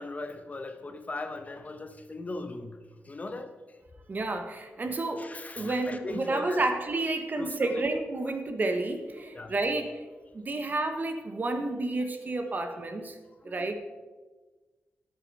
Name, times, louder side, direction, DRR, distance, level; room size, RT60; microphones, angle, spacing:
voice 1, 0.0-2.8 3.0-3.8 5.2-6.6 7.3-7.9 9.3-9.5 13.4-13.7, left 2 dB, 35° left, 8 dB, 0.9 m, -38 dB
voice 2, 4.1-10.0 10.3-13.2 13.4-13.7, right 2 dB, 45° right, 7 dB, 1.2 m, -30 dB
10.5 x 8.2 x 4.7 m, 1.3 s
cardioid pair, 70°, 4 cm